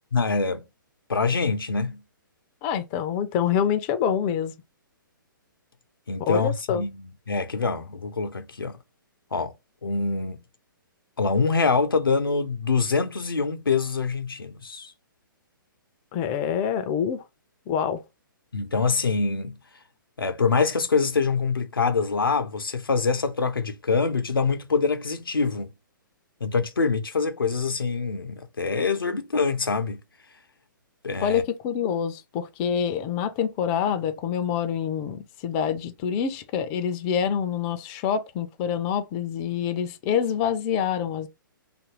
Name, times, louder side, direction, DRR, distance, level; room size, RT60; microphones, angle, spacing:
voice 1, 0.1-0.6 1.1-2.0 6.1-6.9 7.3-8.8 9.3-9.5 9.8-10.4 11.2-14.9 18.5-19.6 20.2-25.7 26.4-30.0 31.0-31.4, left 4 dB, 85° left, 0.5 m, -25 dB
voice 2, 2.6-4.5 6.2-6.8 16.1-17.2 17.7-18.0 31.2-41.3, left 8 dB, 25° left, 0.4 m, -26 dB
2.7 x 2.5 x 2.9 m
figure-of-eight pair, 125°, 11 cm